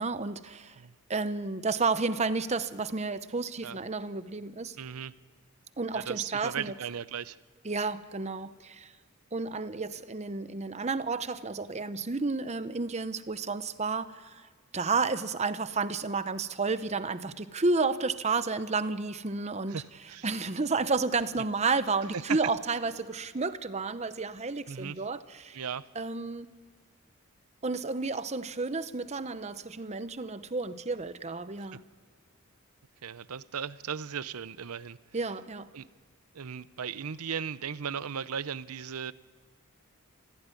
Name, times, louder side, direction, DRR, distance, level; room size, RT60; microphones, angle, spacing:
voice 1, 0.0-0.8 1.1-4.8 5.8-6.7 7.6-8.9 9.3-14.5 14.7-19.8 20.2-25.6 25.9-26.5 27.6-31.8 35.1-35.7, right 4 dB, 30° right, 12 dB, 0.8 m, -31 dB
voice 2, 4.8-5.1 5.9-7.4 19.7-19.8 20.1-20.3 24.7-25.0 25.5-25.8 31.7-31.8 33.0-35.0 35.7-35.9 36.3-39.1, right 7 dB, 85° right, 17 dB, 0.7 m, -37 dB
21.5 x 15.5 x 9.8 m, 1.5 s
head